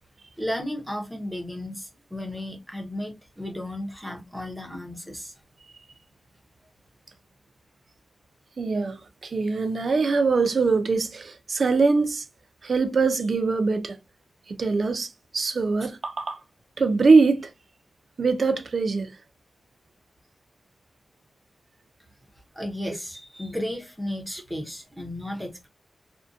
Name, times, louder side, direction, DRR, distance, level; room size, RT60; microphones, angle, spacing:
voice 1, 0.4-5.3 22.5-25.7, left 1 dB, 5° right, 0.7 m, -34 dB
voice 2, 8.6-12.2 12.6-14.0 14.5-16.4 16.8-17.5 18.2-19.1, right 4 dB, 55° right, 0.4 m, -23 dB
2.6 x 2.1 x 2.4 m
wide cardioid pair, 140°, 0 cm